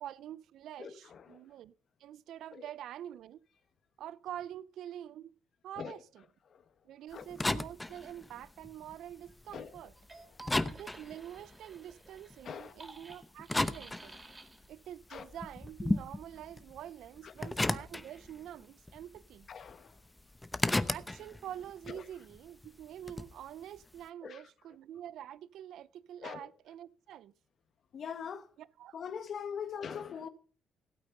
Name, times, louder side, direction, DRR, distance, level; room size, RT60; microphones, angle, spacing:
voice 1, 0.0-1.7 2.0-3.4 4.0-5.3 5.6-6.2 6.8-9.9 10.7-14.2 14.7-19.5 20.9-27.3 28.6-29.0, right 11 dB, 80° right, 0.5 m, -46 dB
voice 2, 0.8-1.4 2.5-2.6 5.8-6.0 6.5-6.6 7.1-7.3 9.5-9.7 12.4-12.7 15.1-15.3 17.2-17.5 19.5-19.9 21.9-22.0 24.2-24.4 26.2-26.5 27.9-28.5 28.9-30.3, left 7 dB, 55° left, 1.5 m, -42 dB
sound 1, 7.1-10.1 10.4-12.4 13.0-14.6 15.0-18.6 18.9-19.7 20.0-23.4, left 2 dB, 10° left, 0.9 m, -35 dB
sound 2, 10.0-14.8, right 3 dB, 25° right, 3.2 m, -53 dB
16.0 x 8.8 x 5.4 m
cardioid pair, 90°, 0 cm